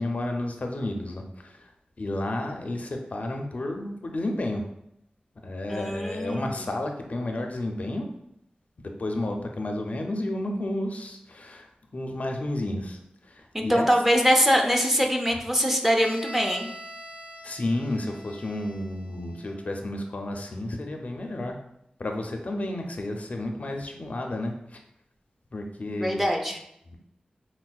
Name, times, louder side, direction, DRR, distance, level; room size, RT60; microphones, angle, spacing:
voice 1, 0.0-1.7 2.0-4.6 5.4-8.1 8.8-13.9 17.4-21.6 22.0-24.8 25.5-26.2 26.8-27.0, left 1 dB, 55° left, 3 dB, 0.4 m, -31 dB
voice 2, 5.7-6.6 13.5-16.7 26.0-26.6, equal, 10° right, 2 dB, 0.4 m, -23 dB
Bowed string instrument, 16.0-19.7, equal, 80° right, 0.7 m, -44 dB
4.4 x 2.0 x 2.3 m, 0.77 s
wide cardioid pair, 65°, 3 cm